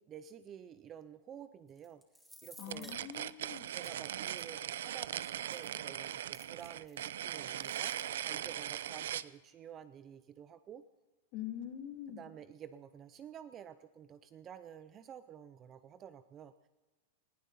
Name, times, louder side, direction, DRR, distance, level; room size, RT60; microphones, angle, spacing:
voice 1, 0.0-2.0 2.4-2.9 3.7-8.0 8.2-10.8 12.1-16.7, right 9 dB, 20° right, 13 dB, 0.5 m, -51 dB
sound 1, 1.7-3.9 4.4-4.5 5.0-7.1 7.4-8.1, equal, ahead, 1.6 m, -58 dB
voice 2, 2.6-3.7 11.3-12.2, left 10 dB, 35° left, 3 dB, 2.7 m, -44 dB
sound 2, 2.7-9.3, right 11 dB, 75° right, 0.5 m, -39 dB
20.5 x 15.0 x 4.1 m, 1.2 s
supercardioid pair, 170°, 0 cm